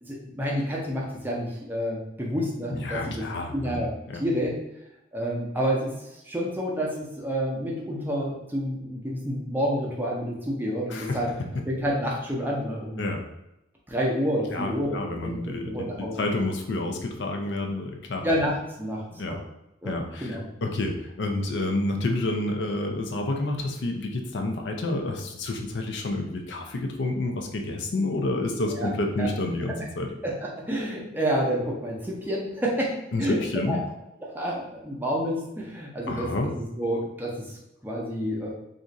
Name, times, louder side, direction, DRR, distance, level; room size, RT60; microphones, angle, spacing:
voice 1, 0.0-3.2 3.5-3.9 4.2-4.5 5.1-11.3 11.7-13.0 13.9-16.4 18.2-19.4 19.8-19.9 20.2-20.4 28.7-28.9 29.2-29.3 29.7-29.8 30.2-33.4 33.7-33.8 34.2-36.3 36.6-38.5, equal, 10° right, -3 dB, 0.6 m, -29 dB
voice 2, 2.7-3.8 4.1-4.2 10.9-11.2 13.0-13.2 14.5-18.2 19.2-19.4 19.8-30.1 33.1-33.8 36.1-36.5, left 2 dB, 60° left, 3 dB, 0.4 m, -29 dB
2.5 x 2.4 x 3.9 m, 0.88 s
head